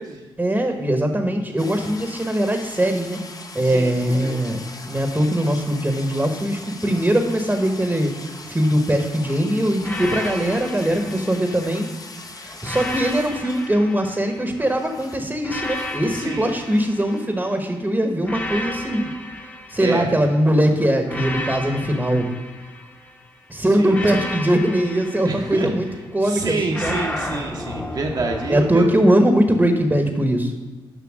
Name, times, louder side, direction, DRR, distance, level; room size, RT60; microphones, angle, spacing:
voice 1, 0.4-3.2 3.5-4.6 4.9-11.8 12.4-19.1 19.7-22.3 23.5-25.9 26.1-27.0 28.5-30.5, right 1 dB, 15° right, 5 dB, 1.1 m, -21 dB
sound 1, 1.6-13.9 14.2-16.1 16.4-17.2, left 3 dB, 40° left, 1.0 m, -40 dB
voice 2, 3.6-3.9 4.2-4.4 16.1-16.5 19.8-20.1 23.8-24.2 25.2-25.7 26.2-28.9, right 3 dB, 45° right, 0 dB, 1.0 m, -27 dB
sound 2, 9.8-12.0 12.6-14.8 15.4-17.6 18.2-20.4 21.1-23.2 23.9-26.1 26.7-28.8, left 1 dB, 20° left, 1.2 m, -33 dB
7.1 x 5.7 x 6.2 m, 1.2 s
supercardioid pair, 55°, 10 cm